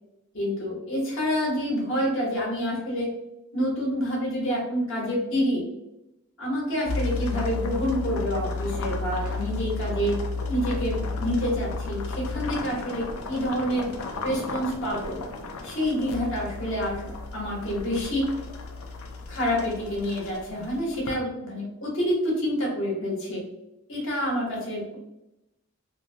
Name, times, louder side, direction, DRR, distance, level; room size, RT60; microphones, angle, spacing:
voice 1, 0.3-3.1 3.5-5.6 6.4-10.1 10.5-13.9 14.2-15.2 15.6-17.0 17.3-18.2 19.3-23.4 23.9-25.0, equal, 60° left, -3 dB, 1.0 m, -27 dB
sound 1, 6.9-21.1, left 3 dB, 75° left, 0.4 m, -33 dB
2.8 x 2.1 x 2.6 m, 0.91 s
head